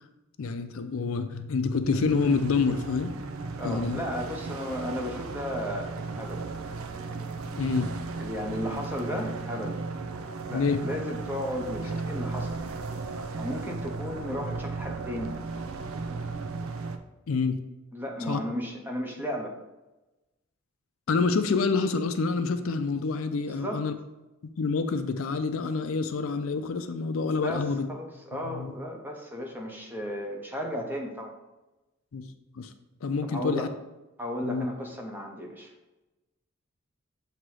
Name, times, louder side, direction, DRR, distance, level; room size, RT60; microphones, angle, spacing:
voice 1, 0.4-3.1 3.6-4.0 7.6-7.9 10.5-10.8 17.3-17.6 18.3-18.4 21.1-23.9 24.4-27.9 28.4-28.8 32.1-32.3 32.6-32.7 33.0-33.7 34.4-34.7, left 4 dB, 70° left, 9 dB, 0.4 m, -27 dB
sound 1, 1.8-17.0, right 3 dB, 85° right, 0.5 m, -35 dB
voice 2, 3.6-6.4 8.2-9.8 10.5-12.5 13.1-15.3 17.9-19.5 23.5-23.8 27.4-31.3 33.2-33.7 34.2-35.7, equal, 10° right, 1 dB, 0.8 m, -34 dB
7.5 x 2.9 x 4.7 m, 1.0 s
head